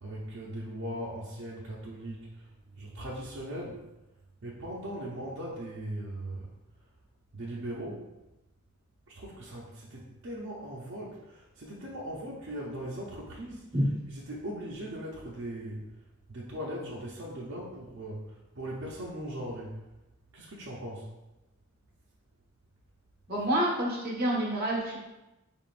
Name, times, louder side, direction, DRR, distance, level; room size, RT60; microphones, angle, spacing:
voice 1, 0.0-2.5 2.7-3.9 4.4-6.5 7.3-8.1 9.1-13.7 14.1-15.9 16.3-19.8 20.3-21.1, right 1 dB, 60° right, -5 dB, 0.6 m, -39 dB
voice 2, 23.3-25.1, right 1 dB, 45° right, -5 dB, 1.3 m, -28 dB
4.5 x 3.6 x 2.5 m, 1.0 s
head